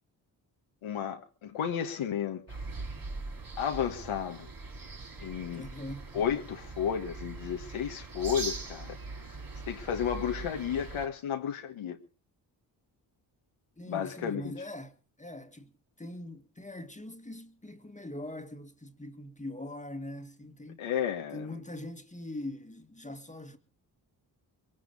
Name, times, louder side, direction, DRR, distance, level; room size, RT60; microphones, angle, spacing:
voice 1, 0.8-2.6 3.6-4.5 5.2-5.7 6.1-9.0 9.6-12.0 13.8-14.5 20.8-21.5, left 8 dB, 80° left, 1.6 m, -33 dB
sound 1, 2.5-11.1, right 3 dB, 45° right, 2.7 m, -41 dB
voice 2, 5.5-6.1 13.8-14.9 15.2-15.7 16.0-20.8 21.3-23.6, left 1 dB, 15° left, 1.8 m, -42 dB
22.0 x 10.5 x 5.4 m
supercardioid pair, 50°, 48 cm